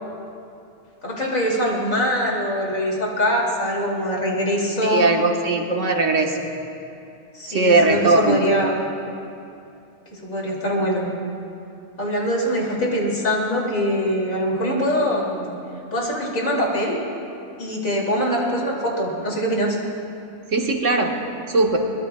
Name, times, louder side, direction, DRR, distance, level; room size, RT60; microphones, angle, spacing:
voice 1, 1.0-5.1 7.3-8.8 10.1-11.1 12.0-15.5 15.9-17.0 17.6-19.8, equal, 85° left, -2 dB, 3.2 m, -23 dB
voice 2, 4.8-6.5 7.5-8.4 20.5-21.1 21.5-21.8, right 3 dB, 65° right, 1 dB, 1.7 m, -19 dB
23.5 x 20.5 x 2.3 m, 2.6 s
omnidirectional pair, 1.4 m